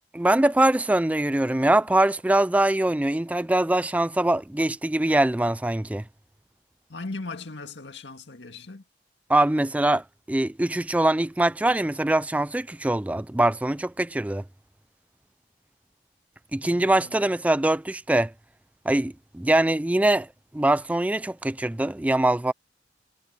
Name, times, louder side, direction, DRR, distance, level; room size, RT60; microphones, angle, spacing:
voice 1, 0.1-6.0 9.3-14.4 16.5-18.3 18.9-20.3 20.5-22.5, right 1 dB, 10° right, 0.3 m, -23 dB
voice 2, 6.9-8.8 16.6-17.2, left 3 dB, 85° left, 1.9 m, -38 dB
head